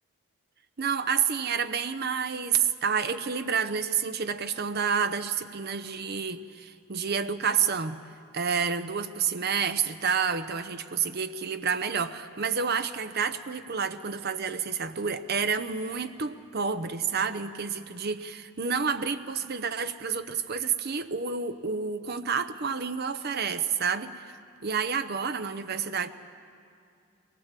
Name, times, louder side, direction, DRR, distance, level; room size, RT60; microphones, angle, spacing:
voice 1, 0.8-8.0 8.3-24.1 24.6-26.1, right 6 dB, 45° right, 10 dB, 0.7 m, -29 dB
23.0 x 19.5 x 7.4 m, 2.4 s
head